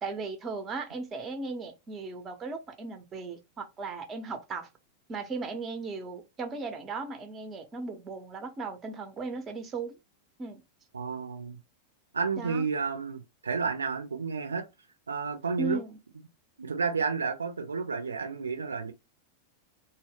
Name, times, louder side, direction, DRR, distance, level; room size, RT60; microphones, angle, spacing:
voice 1, 0.0-4.7 5.1-9.9 10.4-10.6 12.4-12.6 15.6-16.0, right 3 dB, 25° right, 0.6 m, -37 dB
voice 2, 10.9-11.6 12.1-14.7 15.1-15.8 16.6-18.9, right 5 dB, 75° right, 0.4 m, -31 dB
2.1 x 2.0 x 3.4 m
figure-of-eight pair, 90°, 0 cm